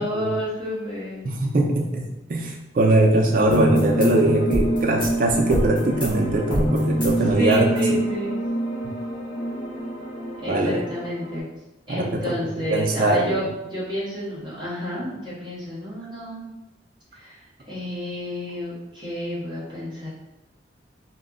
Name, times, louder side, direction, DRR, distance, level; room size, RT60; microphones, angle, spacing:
voice 1, 0.0-1.3 7.4-8.4 10.4-11.5 11.9-16.5 17.1-17.4 17.7-20.1, equal, 25° right, -8 dB, 0.9 m, -30 dB
voice 2, 1.2-8.0 10.5-10.8 11.9-12.3 12.7-13.4, right 2 dB, 45° right, 1 dB, 0.4 m, -21 dB
sound 1, 3.4-11.4, equal, 25° left, 0.8 m, -25 dB
2.1 x 2.1 x 3.6 m, 0.95 s
head